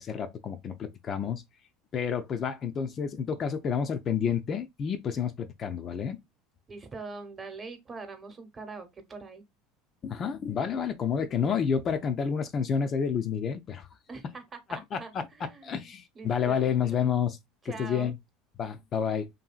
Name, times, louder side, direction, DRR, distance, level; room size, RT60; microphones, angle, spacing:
voice 1, 0.0-1.4 1.9-6.2 10.0-13.9 14.7-17.4 17.6-18.1 18.6-19.3, left 7 dB, 40° left, 0.4 m, -30 dB
voice 2, 6.7-9.4 14.1-14.4 14.7-17.0 17.6-18.1, right 4 dB, 30° right, 0.9 m, -43 dB
2.7 x 2.7 x 2.4 m
hypercardioid pair, 85°, 0 cm